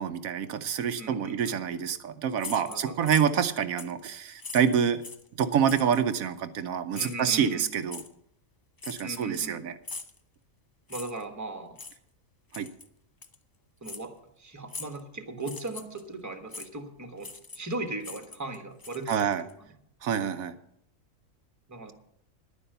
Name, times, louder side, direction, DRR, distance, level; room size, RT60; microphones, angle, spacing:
voice 1, 0.0-5.0 5.4-8.0 8.9-9.8 12.5-12.7 19.1-19.4 20.0-20.5, right 8 dB, 80° right, 10 dB, 1.1 m, -27 dB
voice 2, 1.0-1.6 2.7-3.1 6.9-7.7 9.0-9.6 10.9-11.8 13.8-14.1 14.4-19.5 21.7-21.9, right 2 dB, 15° right, 6 dB, 1.2 m, -38 dB
sound 1, 2.4-3.5 3.8-4.0 4.4-5.3 5.7-6.0 6.9-7.3 7.9-8.1 8.8-9.5 9.8-10.2 10.9-11.2 11.8-12.0 12.5-12.9 13.2-13.4 13.8-14.1 14.7-15.0 15.4-16.0 16.5-16.7 17.2-17.7 18.0-19.5, left 4 dB, 35° left, 0.3 m, -42 dB
10.5 x 9.8 x 6.8 m, 0.73 s
omnidirectional pair, 1.5 m